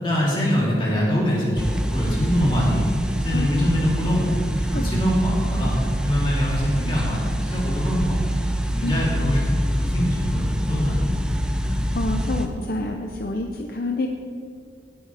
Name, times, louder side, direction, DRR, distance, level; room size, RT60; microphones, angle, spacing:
voice 1, 0.0-2.8 3.2-4.3 4.7-5.7 6.0-8.3 8.7-11.0, equal, 30° left, -6 dB, 3.2 m, -23 dB
sound 1, 1.6-12.5, equal, 5° right, 0.6 m, -25 dB
voice 2, 3.3-3.7 4.6-4.8 8.8-9.0 11.6-14.1, left 2 dB, 55° left, 3 dB, 0.6 m, -28 dB
17.5 x 8.6 x 3.4 m, 2.2 s
head